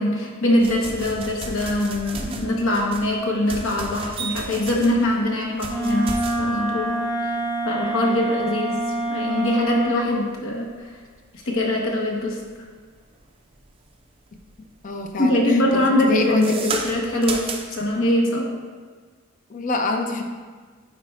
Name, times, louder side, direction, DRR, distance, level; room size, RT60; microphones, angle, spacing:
voice 1, 0.0-6.9 7.2-7.3 7.6-8.8 9.1-10.7 11.4-12.4 15.2-18.4, left 1 dB, 65° left, -1 dB, 1.0 m, -23 dB
sound 1, 0.6-13.9 14.3-14.8 15.0-17.9, right 4 dB, 25° right, 0.4 m, -34 dB
Wind instrument woodwind instrument, 5.7-10.0, right 1 dB, 20° left, 1.3 m, -26 dB
voice 2, 14.8-16.7 19.5-20.2, left 2 dB, 35° left, 4 dB, 0.5 m, -25 dB
9.9 x 4.2 x 2.4 m, 1.5 s
head